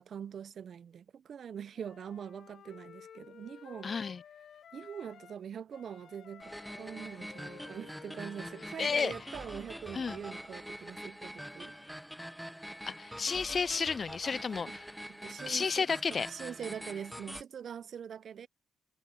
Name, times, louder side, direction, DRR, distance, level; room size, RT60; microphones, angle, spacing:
voice 1, 0.0-3.9 4.7-11.7 14.7-14.8 15.1-18.5, right 8 dB, 55° right, 0.7 m, -43 dB
Wind instrument woodwind instrument, 1.7-5.4 5.7-9.7, left 8 dB, 60° left, 2.6 m, -54 dB
voice 2, 3.8-4.2 8.8-9.1 9.9-10.2 12.9-14.9 15.5-16.3, left 5 dB, 40° left, 0.4 m, -32 dB
sound 1, 6.4-17.4, equal, ahead, 0.9 m, -45 dB
cardioid pair, 90°, 0 cm